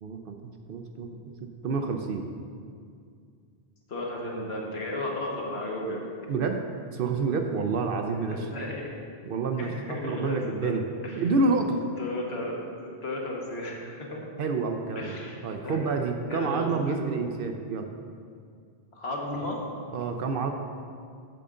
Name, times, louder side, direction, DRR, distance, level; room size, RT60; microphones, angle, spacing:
voice 1, 0.0-2.3 6.3-6.6 6.9-8.5 9.3-10.8 11.2-11.8 14.4-15.2 15.4-17.9 19.9-20.5, right 4 dB, 65° right, 5 dB, 0.7 m, -28 dB
voice 2, 3.9-6.0 8.3-8.9 9.6-10.8 11.0-11.2 12.0-12.6 13.0-14.3 15.0-15.9 16.3-17.0 18.9-19.7, left 2 dB, 70° left, -1 dB, 1.4 m, -34 dB
7.8 x 6.7 x 3.7 m, 2.2 s
omnidirectional pair, 1.1 m